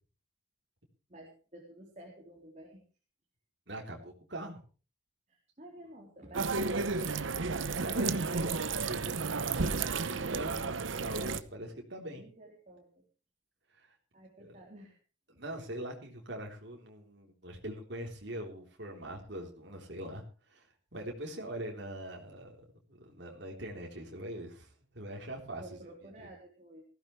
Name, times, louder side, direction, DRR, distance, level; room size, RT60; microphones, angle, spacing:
voice 1, 1.1-2.8 5.3-7.3 12.1-13.0 14.1-15.0 25.5-26.8, right 1 dB, 40° right, -1 dB, 3.9 m, -51 dB
voice 2, 3.7-4.6 7.8-12.2 13.7-13.9 14.4-14.6 15.3-25.6 26.2-26.3, right 1 dB, 60° right, 0 dB, 3.7 m, -43 dB
sound 1, 6.3-11.4, right 4 dB, 85° right, 0.9 m, -32 dB
19.5 x 15.0 x 3.2 m, 0.36 s
head